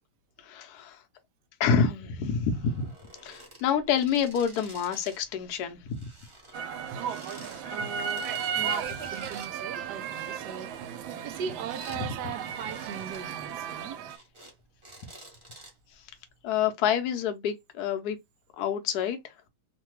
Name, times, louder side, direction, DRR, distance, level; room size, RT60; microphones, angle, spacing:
voice 1, 0.4-1.0 1.6-2.9 3.2-6.0 12.0-12.1 16.4-18.2 18.6-19.2, left 7 dB, 70° left, 1.0 m, -27 dB
sound 1, 2.5-5.3 5.5-9.5 10.2-12.0 12.4-13.2 13.7-14.5 14.8-15.9 16.5-16.6, right 1 dB, 20° right, 0.9 m, -50 dB
sound 2, 6.5-14.2, right 7 dB, 85° right, 1.4 m, -35 dB
voice 2, 7.7-8.3 8.5-14.0, right 6 dB, 70° right, 1.0 m, -39 dB
3.2 x 2.2 x 2.9 m
omnidirectional pair, 2.1 m